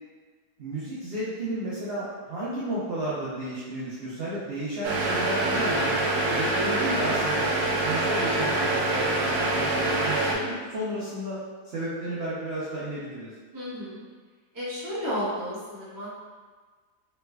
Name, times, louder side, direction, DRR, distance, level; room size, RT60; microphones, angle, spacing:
voice 1, 0.6-6.0 6.3-7.5 7.8-9.3 9.5-11.4 11.6-13.3, right 1 dB, 55° right, -10 dB, 0.7 m, -32 dB
sound 1, 4.8-10.3, right 2 dB, 80° right, 1.2 m, -25 dB
voice 2, 7.0-7.4 13.5-14.0 14.5-16.1, equal, 15° right, -10 dB, 0.7 m, -33 dB
3.2 x 3.1 x 2.2 m, 1.5 s
omnidirectional pair, 1.7 m